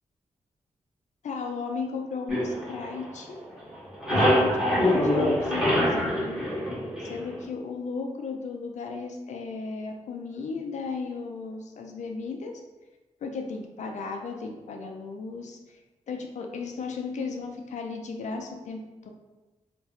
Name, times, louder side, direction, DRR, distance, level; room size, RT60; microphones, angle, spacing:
voice 1, 1.2-3.4 4.1-6.4 7.0-12.6 13.2-15.6 16.1-19.1, left 4 dB, 75° left, 3 dB, 0.4 m, -35 dB
sound 1, 2.3-3.4 3.7-7.4, equal, ahead, 1.4 m, -25 dB
2.8 x 2.5 x 3.1 m, 1.1 s
cardioid pair, 55°, 12 cm